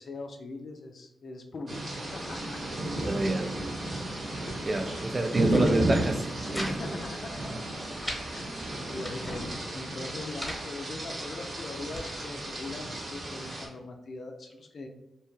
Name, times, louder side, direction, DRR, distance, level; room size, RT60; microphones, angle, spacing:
voice 1, 0.0-2.6 4.2-4.9 6.6-7.4 7.9-8.5 8.8-14.9, left 3 dB, 60° left, 0.3 m, -41 dB
sound 1, 1.7-13.7, right 1 dB, 60° right, 1.1 m, -33 dB
voice 2, 3.0-3.6 4.6-7.0, right 2 dB, 35° right, 0.3 m, -29 dB
sound 2, 5.4-5.8 6.1-6.7 7.0-7.1 7.5-8.2 8.8-9.4 10.0-10.6 11.3-12.1, equal, 10° left, 1.0 m, -40 dB
2.7 x 2.2 x 3.0 m
cardioid pair, 55°, 0 cm